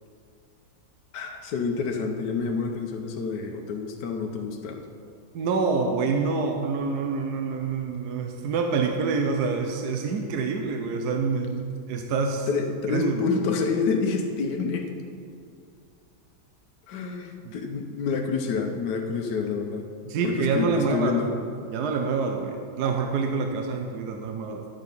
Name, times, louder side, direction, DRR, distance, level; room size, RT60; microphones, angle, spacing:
voice 1, 1.1-4.8 12.5-14.9 16.9-19.9 20.2-21.3, left 5 dB, 75° left, 3 dB, 1.4 m, -28 dB
voice 2, 5.3-12.5 12.9-13.4 17.4-17.5 20.0-21.4 21.7-24.7, right 4 dB, 70° right, 3 dB, 1.2 m, -27 dB
11.0 x 7.4 x 5.3 m, 2.4 s
omnidirectional pair, 1.9 m